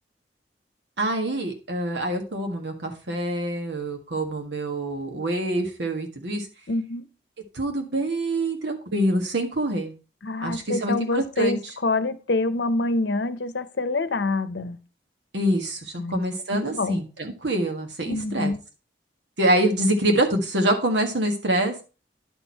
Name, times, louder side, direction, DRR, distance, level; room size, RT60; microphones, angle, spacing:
voice 1, 1.0-6.5 7.5-9.9 10.4-11.6 15.3-18.6 19.4-21.8, right 1 dB, 85° right, 1.7 m, -25 dB
voice 2, 6.7-7.0 10.2-14.8 16.0-16.2 16.5-17.0 18.1-18.6, left 2 dB, 85° left, 0.7 m, -26 dB
10.5 x 4.4 x 4.6 m
head